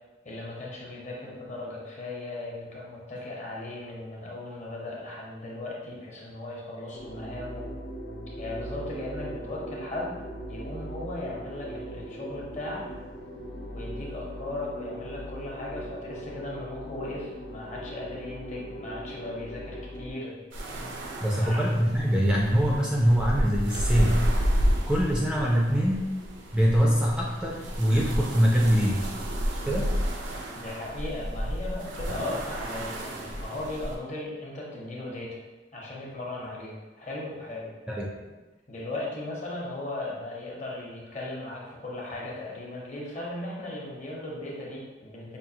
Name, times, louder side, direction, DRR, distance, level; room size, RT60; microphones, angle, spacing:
voice 1, 0.2-7.7 8.4-10.1 10.5-12.8 13.7-20.3 21.4-21.6 30.5-35.4 35.7-37.7 38.7-45.4, left 2 dB, 40° left, -4 dB, 0.9 m, -37 dB
sound 1, 6.9-20.1, right 1 dB, 65° left, 0.7 m, -39 dB
sound 2, 20.5-34.0, equal, 80° right, 0.6 m, -31 dB
voice 2, 21.2-24.3 24.9-26.2 26.5-29.1 29.6-29.9 37.9-38.1, equal, 5° right, -3 dB, 0.4 m, -23 dB
5.3 x 2.4 x 2.7 m, 1.2 s
head